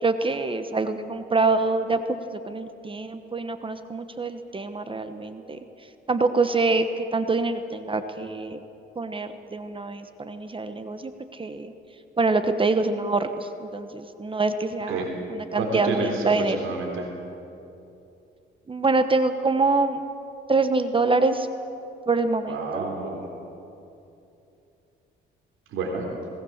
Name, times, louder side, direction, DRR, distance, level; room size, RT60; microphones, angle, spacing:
voice 1, 0.0-5.6 6.1-8.6 9.0-11.7 12.2-15.0 15.3-16.7 18.7-20.0 20.5-21.5 22.1-22.9, right 3 dB, 25° right, 9 dB, 1.1 m, -25 dB
voice 2, 15.6-17.1 22.5-23.2 25.7-26.1, right 3 dB, 85° right, 0 dB, 3.5 m, -29 dB
20.0 x 18.0 x 7.3 m, 2.8 s
cardioid pair, 90°, 20 cm